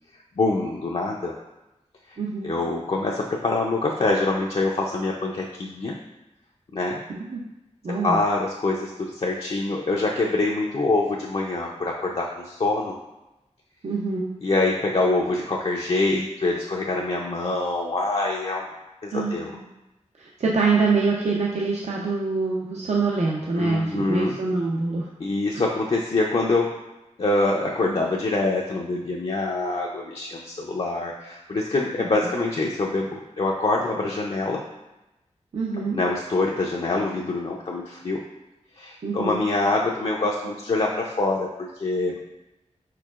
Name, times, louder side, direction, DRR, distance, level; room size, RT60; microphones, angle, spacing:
voice 1, 0.4-1.3 2.1-2.2 2.4-6.0 6.7-7.0 7.9-12.9 14.4-18.7 19.0-19.5 23.6-24.4 25.2-26.7 27.2-34.6 35.8-38.2 38.8-42.2, left 2 dB, 50° left, -2 dB, 0.5 m, -25 dB
voice 2, 2.2-2.5 7.1-7.4 7.8-8.2 13.8-14.3 19.1-19.6 20.2-25.1 25.5-25.6 35.5-36.0 39.0-39.4, right 4 dB, 65° right, -3 dB, 0.6 m, -25 dB
4.7 x 4.5 x 2.4 m, 0.99 s
wide cardioid pair, 65°, 12 cm